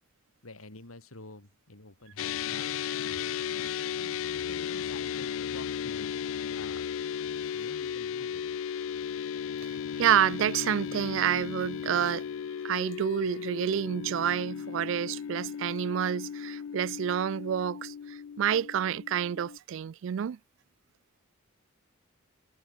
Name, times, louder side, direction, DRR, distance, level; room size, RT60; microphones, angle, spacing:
voice 1, 0.4-3.3 4.0-6.1 6.5-6.9 7.5-8.4, left 2 dB, 90° left, 3.3 m, -49 dB
sound 1, 2.2-19.6, left 8 dB, 70° left, 0.3 m, -35 dB
voice 2, 10.0-12.2 12.6-20.4, right 9 dB, 60° right, 0.3 m, -28 dB
head